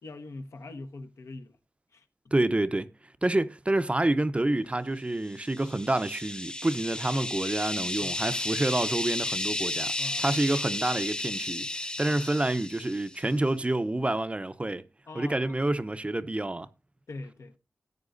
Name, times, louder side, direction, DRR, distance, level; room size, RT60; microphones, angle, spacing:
voice 1, 0.0-1.6 1.9-2.1 7.1-7.3 8.0-8.2 10.0-10.3 12.1-12.2 15.1-15.6 17.1-17.6, left 2 dB, 80° left, 1.2 m, -42 dB
voice 2, 2.3-2.9 3.2-9.9 10.2-14.8 15.1-16.7, right 2 dB, 25° right, 0.7 m, -28 dB
sound 1, 5.4-13.2, left 2 dB, 20° left, 0.5 m, -33 dB
14.5 x 9.2 x 2.6 m
wide cardioid pair, 75°, 5 cm